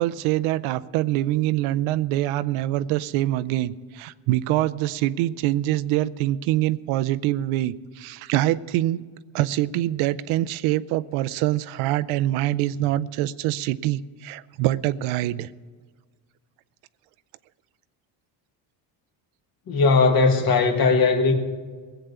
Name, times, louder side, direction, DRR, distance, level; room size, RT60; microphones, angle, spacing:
voice 1, 0.0-9.0 9.3-15.5, right 14 dB, 80° right, 0.6 m, -24 dB
voice 2, 19.7-21.3, left 4 dB, 45° left, 1.7 m, -18 dB
17.5 x 8.0 x 6.8 m
cardioid pair, 115°, 48 cm